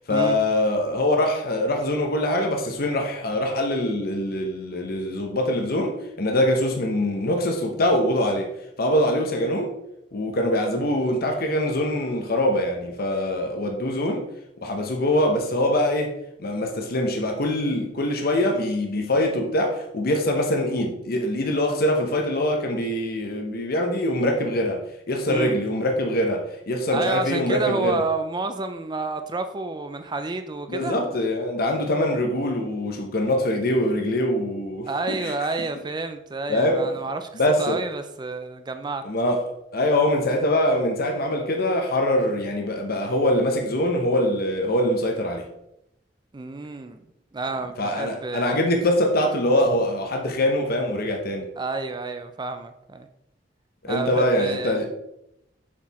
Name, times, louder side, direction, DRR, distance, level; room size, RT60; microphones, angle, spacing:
voice 1, 0.1-8.5 8.8-9.7 10.1-14.2 14.6-16.1 16.4-24.8 25.1-28.0 30.7-35.3 36.5-36.9 37.4-37.8 39.0-39.4 39.7-45.4 47.8-51.5 53.8-54.9, left 1 dB, 55° left, 3 dB, 0.9 m, -23 dB
voice 2, 26.9-31.0 34.9-37.3 37.6-39.0 46.3-47.0 47.3-48.7 51.6-53.1 53.9-54.8, right 3 dB, 25° right, 8 dB, 0.4 m, -29 dB
7.3 x 4.7 x 4.1 m, 0.83 s
head